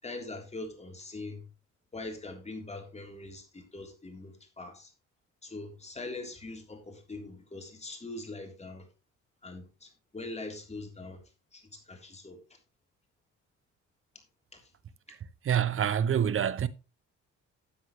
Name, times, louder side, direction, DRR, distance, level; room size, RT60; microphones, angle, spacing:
voice 1, 0.0-1.4 1.9-4.9 5.4-8.9 9.4-11.2 11.5-12.4 14.5-14.6, left 2 dB, 20° left, 3.4 m, -42 dB
voice 2, 15.4-16.7, right 9 dB, 45° right, 0.9 m, -26 dB
12.5 x 7.8 x 3.1 m
cardioid pair, 90°, 30 cm